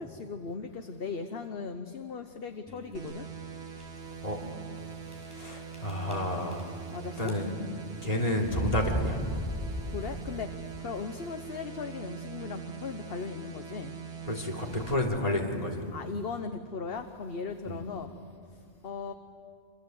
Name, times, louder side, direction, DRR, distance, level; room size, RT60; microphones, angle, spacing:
voice 1, 0.0-3.3 6.9-7.3 9.9-14.0 15.9-18.1 18.8-19.1, left 5 dB, 60° left, 7 dB, 1.2 m, -38 dB
sound 1, 2.7-3.1 3.7-3.8 4.1-4.2 5.1-5.5 5.7-6.9 7.2-7.7 8.4-10.4, right 1 dB, 5° right, 6.0 m, -35 dB
sound 2, 2.9-14.9, right 6 dB, 75° right, 1.8 m, -42 dB
voice 2, 5.3-6.7 7.2-7.5 8.0-9.2 14.3-15.8 17.7-17.8, left 1 dB, 35° left, 1 dB, 3.6 m, -30 dB
27.0 x 26.0 x 8.0 m, 2.2 s
omnidirectional pair, 1.1 m